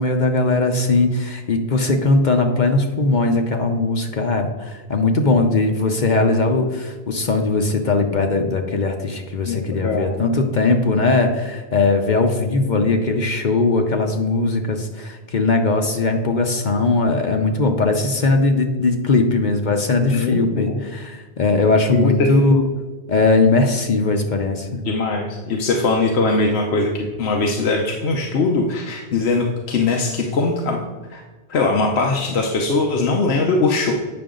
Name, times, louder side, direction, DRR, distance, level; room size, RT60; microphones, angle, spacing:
voice 1, 0.0-22.7 23.1-24.8, left 3 dB, 50° left, 4 dB, 0.8 m, -19 dB
voice 2, 9.5-10.2 20.1-20.8 21.9-22.3 24.8-30.8 31.1-31.2 31.5-33.9, left 3 dB, 80° left, 1 dB, 1.0 m, -21 dB
8.7 x 5.9 x 3.8 m, 1.3 s
omnidirectional pair, 1.1 m